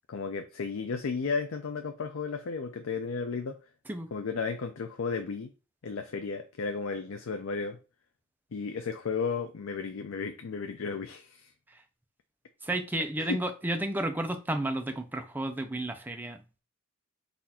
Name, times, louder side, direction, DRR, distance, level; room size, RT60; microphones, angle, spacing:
voice 1, 0.1-3.5 4.1-5.5 5.8-7.8 8.5-11.5 13.2-13.4, left 5 dB, 80° left, 0.5 m, -34 dB
voice 2, 12.6-16.4, right 1 dB, 10° right, 0.5 m, -32 dB
4.2 x 2.5 x 4.2 m
head